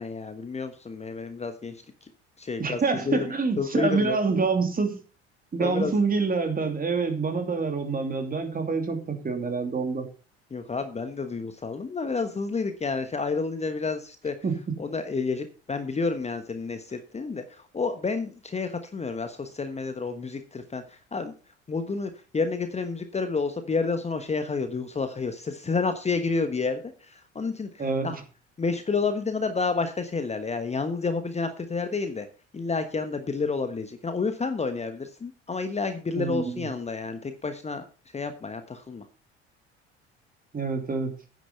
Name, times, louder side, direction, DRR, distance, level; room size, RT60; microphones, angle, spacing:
voice 1, 0.0-2.1 2.4-4.2 5.6-5.9 10.5-14.4 14.8-21.3 21.7-28.2 28.6-32.3 32.5-37.9 38.1-39.1, left 4 dB, 20° left, 9 dB, 1.2 m, -30 dB
voice 2, 2.6-5.0 5.5-10.1 14.4-14.6 27.8-28.1 36.2-36.7 40.5-41.1, right 4 dB, 25° right, 5 dB, 2.9 m, -26 dB
9.9 x 9.4 x 5.4 m, 0.35 s
figure-of-eight pair, 60°, 34 cm